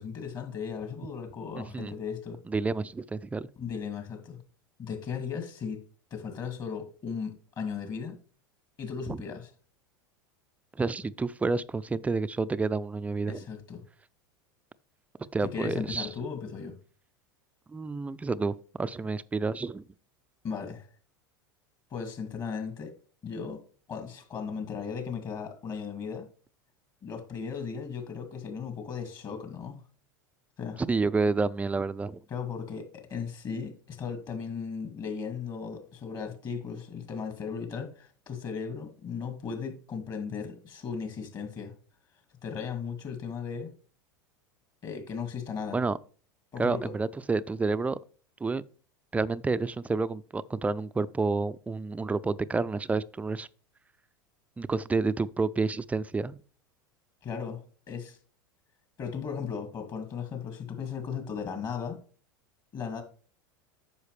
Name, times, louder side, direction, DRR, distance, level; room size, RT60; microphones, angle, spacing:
voice 1, 0.0-2.4 3.6-4.4 4.8-5.8 6.1-8.2 8.8-9.5 13.3-13.8 15.4-16.8 20.4-20.9 21.9-22.9 23.2-23.6 23.9-26.3 27.0-29.8 30.6-30.8 32.3-41.7 42.4-43.7 44.8-45.8 46.5-46.9 57.2-57.6 57.9-58.2 59.0-62.0 62.7-63.0, left 6 dB, 40° left, 2.2 m, -36 dB
voice 2, 1.6-1.9 2.5-3.5 9.1-9.2 10.8-13.4 15.3-16.1 17.7-19.8 30.8-32.2 45.7-46.0 46.6-48.0 48.4-48.6 49.1-53.5 54.6-56.4, right 3 dB, 10° right, 0.4 m, -29 dB
9.6 x 6.4 x 3.3 m
hypercardioid pair, 85°, 12 cm